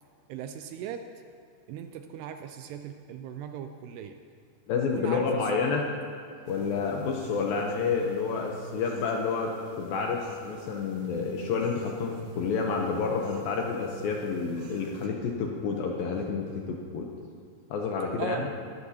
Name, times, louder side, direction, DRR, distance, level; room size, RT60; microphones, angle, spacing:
voice 1, 0.3-1.1 1.7-4.2 4.9-5.8 18.2-18.5, right 8 dB, 85° right, 7 dB, 2.4 m, -38 dB
voice 2, 4.7-5.9 6.5-17.1 17.7-18.4, left 5 dB, 75° left, 0 dB, 2.2 m, -29 dB
sound 1, 6.5-15.1, right 3 dB, 65° right, 2.2 m, -46 dB
22.0 x 13.0 x 2.8 m, 2.4 s
omnidirectional pair, 5.0 m